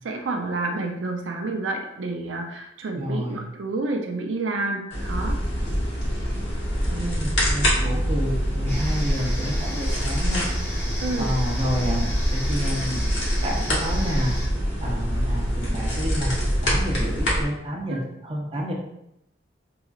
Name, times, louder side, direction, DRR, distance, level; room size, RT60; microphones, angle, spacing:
voice 1, 0.0-5.4 11.0-11.3 17.9-18.0, right 2 dB, 90° right, 2 dB, 0.5 m, -29 dB
voice 2, 3.0-3.4 6.9-10.5 11.2-13.0 13.4-14.4 14.8-18.7, equal, 30° right, -2 dB, 0.7 m, -29 dB
sound 1, 4.9-17.4, equal, 75° left, 1.3 m, -25 dB
sound 2, 8.7-14.5, equal, 15° left, 0.9 m, -32 dB
3.7 x 3.0 x 2.4 m, 0.82 s
head